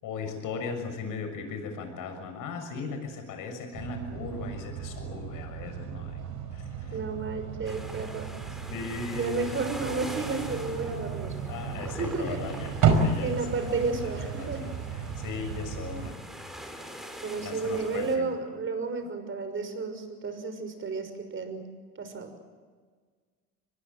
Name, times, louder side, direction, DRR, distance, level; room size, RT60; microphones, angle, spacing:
voice 1, 0.0-6.3 6.5-7.0 8.4-9.6 11.5-13.4 14.0-16.2 17.4-18.3, left 4 dB, 55° left, 7 dB, 6.8 m, -38 dB
sound 1, 3.7-16.1, right 5 dB, 50° right, 5.1 m, -33 dB
voice 2, 6.9-8.3 9.1-11.4 11.8-12.4 13.2-14.7 17.2-21.7 22.0-22.3, right 4 dB, 30° right, 8 dB, 6.1 m, -32 dB
sound 2, 7.6-18.2, equal, ahead, 5.3 m, -44 dB
24.0 x 21.0 x 7.8 m, 1.6 s
hypercardioid pair, 80°, 38 cm